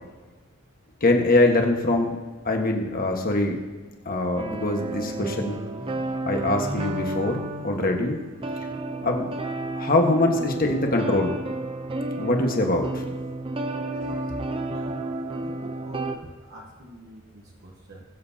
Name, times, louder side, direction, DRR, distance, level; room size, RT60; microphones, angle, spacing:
voice 1, 1.0-2.2 2.4-3.6 4.0-5.6 6.2-8.2 9.0-9.3 9.8-11.4 12.2-13.0, left 2 dB, 40° left, 3 dB, 1.4 m, -23 dB
sound 1, 4.4-8.1 8.4-16.2, right 2 dB, 25° right, 0.6 m, -31 dB
voice 2, 14.7-15.0 15.4-18.0, right 1 dB, 55° right, -1 dB, 1.1 m, -46 dB
21.0 x 7.8 x 2.8 m, 1.3 s
head